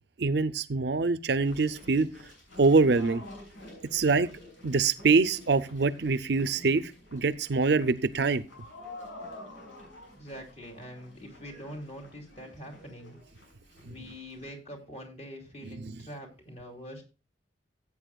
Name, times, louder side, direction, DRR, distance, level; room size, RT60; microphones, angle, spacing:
voice 1, 0.2-2.1 2.6-3.2 3.9-4.3 4.6-8.4 13.9-14.0 15.8-15.9, right 4 dB, 60° right, 0.5 m, -24 dB
sound 1, 1.4-14.5, left 1 dB, 85° left, 6.5 m, -49 dB
voice 2, 10.1-13.1 13.8-17.0, equal, 35° left, 2.9 m, -44 dB
16.0 x 8.4 x 2.3 m
head